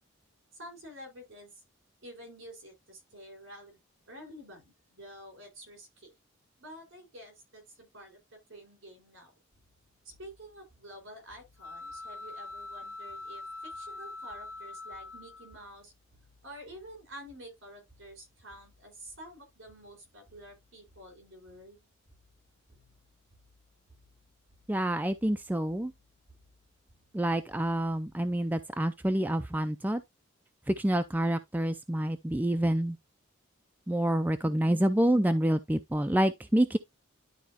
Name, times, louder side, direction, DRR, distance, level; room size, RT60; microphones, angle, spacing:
voice 1, 0.5-1.6 2.0-3.8 4.1-6.1 6.6-9.3 10.0-15.9 16.4-21.8, equal, 65° right, 4.7 m, -49 dB
sound 1, 9.5-28.6, left 1 dB, 35° right, 5.1 m, -65 dB
sound 2, 11.6-15.7, left 3 dB, 70° left, 0.7 m, -43 dB
voice 2, 24.7-25.9 27.1-30.0 30.7-33.0 33.9-36.8, right 1 dB, 10° right, 0.4 m, -27 dB
11.5 x 4.4 x 2.8 m
head